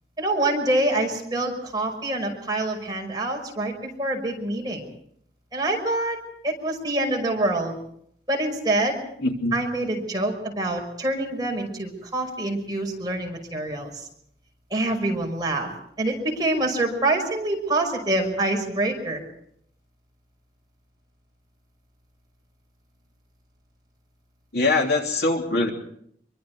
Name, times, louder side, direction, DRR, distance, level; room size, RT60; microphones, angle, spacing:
voice 1, 0.2-4.8 5.5-6.2 6.4-7.7 8.3-9.0 9.5-14.0 14.7-15.7 16.0-19.2, right 2 dB, 25° right, 0 dB, 5.8 m, -26 dB
voice 2, 9.2-9.6 24.5-25.7, left 2 dB, 65° left, 1 dB, 3.3 m, -22 dB
25.5 x 24.0 x 4.8 m, 0.68 s
head